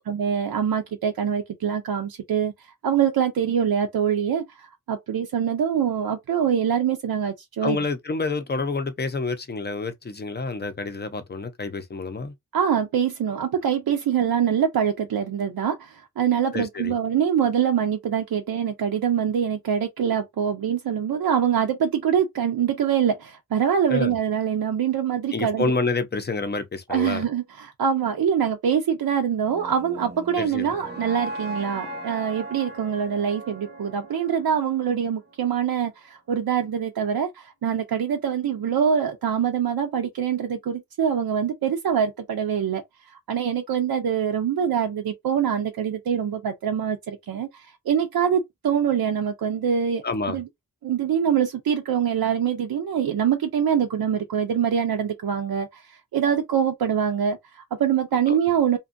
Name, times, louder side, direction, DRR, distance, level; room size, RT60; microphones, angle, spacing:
voice 1, 0.1-2.5 2.8-7.8 12.5-25.7 26.9-42.8 43.3-47.5 47.9-50.5 50.8-55.8 56.1-58.8, right 8 dB, 75° right, 0.6 m, -24 dB
voice 2, 7.6-12.3 16.5-16.9 23.9-24.1 25.3-27.2 30.4-30.7 50.0-50.4 58.3-58.4, left 3 dB, 30° left, 0.6 m, -28 dB
sound 1, 29.4-35.6, right 1 dB, 30° right, 0.8 m, -38 dB
2.6 x 2.3 x 2.5 m
wide cardioid pair, 70°, 36 cm